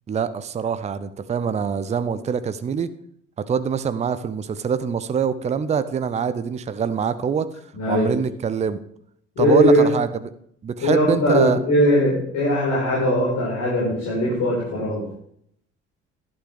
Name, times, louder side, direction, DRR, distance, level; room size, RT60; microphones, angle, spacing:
voice 1, 0.1-2.9 3.4-7.5 7.9-8.8 9.4-10.1 10.6-11.6, right 7 dB, 20° right, 13 dB, 0.6 m, -24 dB
voice 2, 7.7-8.1 9.3-9.9 10.8-15.0, equal, 50° left, -6 dB, 5.0 m, -20 dB
11.5 x 8.8 x 3.6 m, 0.68 s
figure-of-eight pair, 55°, 35 cm